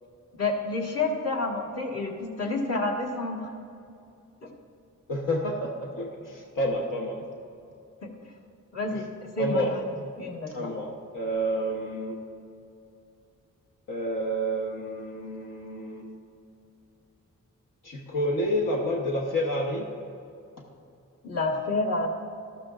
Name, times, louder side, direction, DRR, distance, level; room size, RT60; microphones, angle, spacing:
voice 1, 0.4-3.5 4.4-4.5 8.0-8.1 8.7-9.0 9.3-9.7 10.2-10.7 21.2-22.1, left 3 dB, 50° left, -1 dB, 1.6 m, -29 dB
voice 2, 5.1-7.2 8.9-9.0 9.4-9.7 10.5-12.2 13.9-16.1 17.8-19.9, equal, 80° left, -1 dB, 1.2 m, -29 dB
13.0 x 13.0 x 2.5 m, 2.6 s
wide cardioid pair, 95°, 32 cm